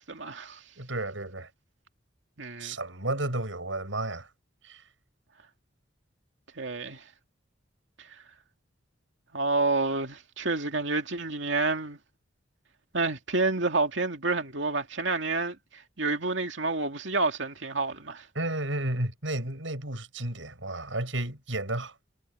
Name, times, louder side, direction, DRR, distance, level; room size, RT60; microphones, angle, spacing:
voice 1, 0.0-0.6 2.4-2.8 6.6-7.0 8.0-8.1 9.3-12.0 12.9-18.3, right 3 dB, 75° right, 2.4 m, -29 dB
voice 2, 0.8-1.5 2.6-4.3 4.6-4.8 18.4-22.0, right 2 dB, 90° right, 7.1 m, -32 dB
head